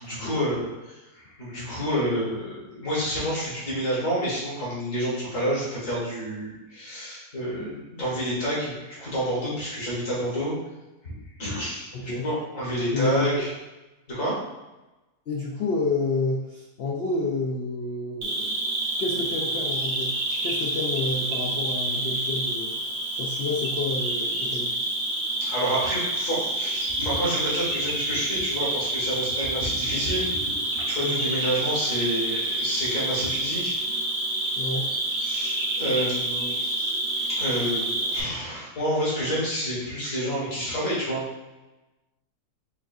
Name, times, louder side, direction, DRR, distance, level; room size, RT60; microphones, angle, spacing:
voice 1, 0.0-10.5 11.0-13.5 14.1-14.3 25.4-33.7 35.2-36.5 37.4-41.2, equal, 55° left, -7 dB, 1.9 m, -29 dB
voice 2, 11.9-12.3 12.9-13.5 15.3-18.5 19.0-22.7 23.2-24.7 31.0-31.3 34.6-34.9, left 3 dB, 80° left, -3 dB, 0.5 m, -29 dB
Cricket, 18.2-38.2, right 1 dB, 65° right, 1.0 m, -28 dB
5.4 x 2.6 x 2.4 m, 1.1 s
omnidirectional pair, 1.7 m